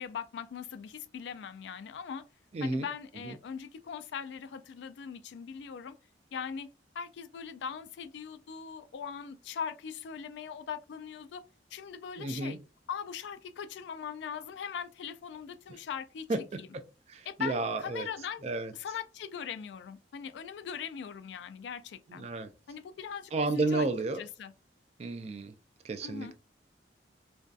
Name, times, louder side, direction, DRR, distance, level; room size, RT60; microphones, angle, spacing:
voice 1, 0.0-2.2 2.6-6.0 6.3-6.7 7.0-11.4 11.7-12.6 12.9-16.7 17.3-18.5 18.7-22.3 22.7-23.9 24.1-24.5 26.0-26.3, left 7 dB, 75° left, 0.3 m, -40 dB
voice 2, 2.5-2.9 12.2-12.6 16.3-16.4 17.1-18.1 18.4-18.7 22.1-22.5 23.3-24.2 25.0-25.5 25.8-26.3, right 2 dB, 35° right, 0.3 m, -31 dB
2.5 x 2.3 x 2.3 m
head